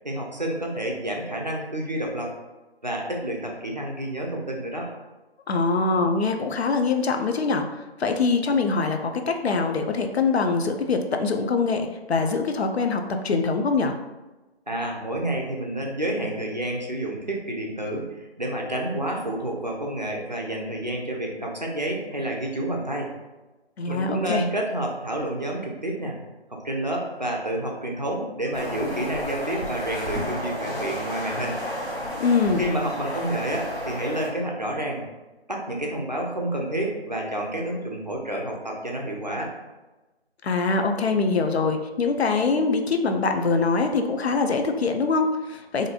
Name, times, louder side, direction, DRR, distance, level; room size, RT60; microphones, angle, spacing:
voice 1, 0.0-2.3 2.8-4.9 14.7-23.1 23.9-26.2 26.5-31.6 32.6-35.0 35.5-39.5, right 1 dB, 45° right, -1 dB, 0.4 m, -29 dB
voice 2, 5.5-7.6 8.0-13.9 23.8-24.4 32.2-32.6 40.4-45.9, left 4 dB, 75° left, 5 dB, 0.5 m, -23 dB
sound 1, 28.5-34.3, equal, 55° left, 1.5 m, -32 dB
2.9 x 2.6 x 2.4 m, 1.1 s
figure-of-eight pair, 170°, 33 cm